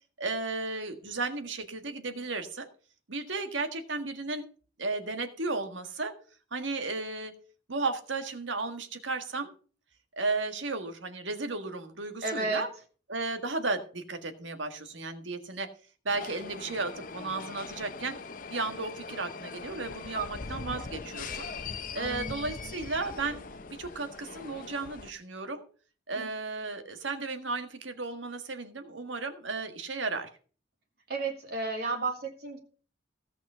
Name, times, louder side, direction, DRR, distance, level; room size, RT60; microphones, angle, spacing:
voice 1, 0.2-2.7 3.1-4.5 4.8-6.1 6.5-7.3 7.7-9.5 10.2-12.7 13.1-15.7 16.0-18.2 18.5-21.5 21.9-23.4 23.7-25.6 26.1-30.3, right 3 dB, 80° right, 7 dB, 1.7 m, -34 dB
voice 2, 12.2-12.7 20.1-20.8 22.0-22.7 26.2-26.3 31.1-32.6, right 3 dB, 55° right, 2 dB, 2.6 m, -34 dB
sound 1, 16.1-25.1, left 4 dB, 45° left, 0.8 m, -41 dB
16.5 x 6.3 x 5.6 m, 0.40 s
head